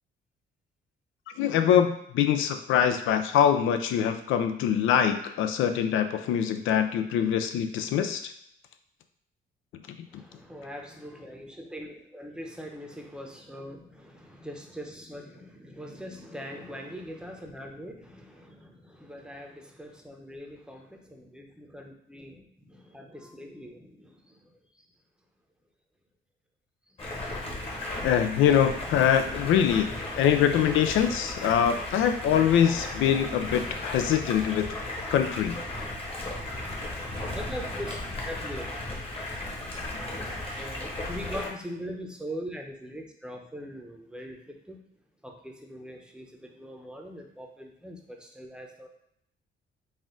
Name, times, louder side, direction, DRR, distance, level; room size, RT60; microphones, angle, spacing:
voice 1, 1.4-8.3 28.0-29.9 30.1-34.7 35.1-35.5, left 9 dB, 80° left, 8 dB, 0.4 m, -24 dB
voice 2, 10.1-24.5 27.0-27.1 37.3-38.0 38.3-38.7 40.6-44.8 45.2-48.9, equal, 5° right, 2 dB, 0.7 m, -42 dB
Stream, 27.0-41.5, left 1 dB, 30° left, 1.1 m, -35 dB
4.2 x 2.4 x 3.7 m, 0.73 s
cardioid pair, 90°, 20 cm